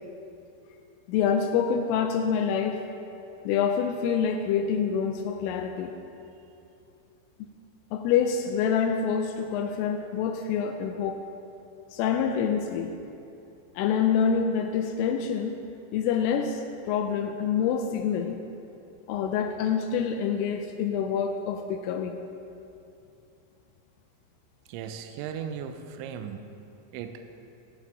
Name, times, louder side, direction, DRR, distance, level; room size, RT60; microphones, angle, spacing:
voice 1, 1.1-2.8 3.5-5.9 7.9-11.2 11.9-13.0 13.8-15.6 15.9-18.4 19.1-22.2, left 7 dB, 85° left, 5 dB, 3.0 m, -26 dB
voice 2, 24.7-26.5 26.9-27.2, right 8 dB, 85° right, 7 dB, 2.7 m, -37 dB
14.0 x 12.5 x 3.6 m, 2.7 s
omnidirectional pair, 6.0 m